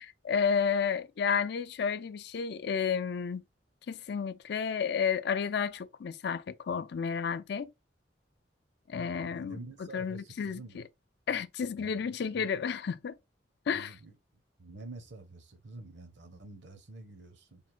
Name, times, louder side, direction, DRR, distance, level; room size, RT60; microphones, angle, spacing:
voice 1, 0.0-3.4 3.9-7.7 8.9-9.6 9.9-10.8 11.3-13.1 13.7-13.9, left 6 dB, 65° left, 0.4 m, -31 dB
voice 2, 9.3-10.8 11.8-12.5 13.7-14.1 14.6-17.6, right 2 dB, 75° right, 0.9 m, -48 dB
3.4 x 2.2 x 4.3 m
head